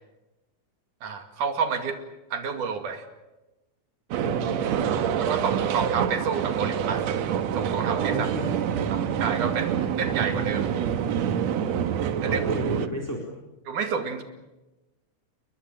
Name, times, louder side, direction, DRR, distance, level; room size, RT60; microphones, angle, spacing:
voice 1, 1.0-2.0 2.3-3.1 5.2-7.0 7.5-8.3 8.9-10.7 12.2-12.4 13.7-14.2, right 6 dB, 80° right, 8 dB, 3.8 m, -29 dB
sound 1, 4.1-12.9, right 8 dB, 65° right, 2.3 m, -26 dB
voice 2, 4.2-5.0 8.1-8.5 12.2-13.2, left 1 dB, 5° left, 0 dB, 3.8 m, -33 dB
30.0 x 21.0 x 7.5 m, 1.0 s
omnidirectional pair, 3.5 m